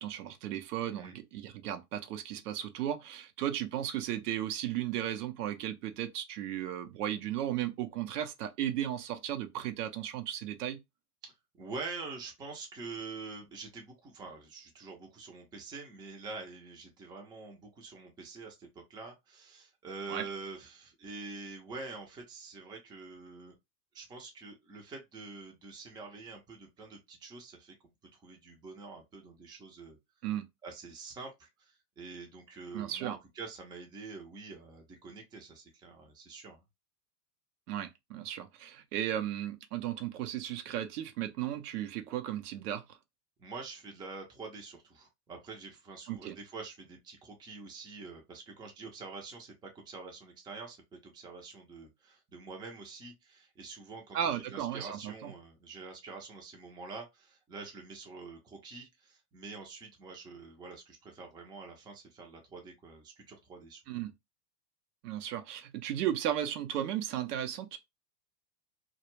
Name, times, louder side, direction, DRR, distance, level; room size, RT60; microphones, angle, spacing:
voice 1, 0.0-10.8 20.1-20.2 30.2-30.4 32.7-33.2 37.7-43.0 46.1-46.4 54.1-55.3 63.9-64.1 65.0-67.8, right 11 dB, 75° right, 0.7 m, -35 dB
voice 2, 11.6-23.5 23.9-27.7 28.1-30.0 30.6-36.6 43.4-50.8 51.0-63.8, right 4 dB, 10° right, 0.4 m, -46 dB
2.2 x 2.0 x 3.0 m
hypercardioid pair, 110°, 48 cm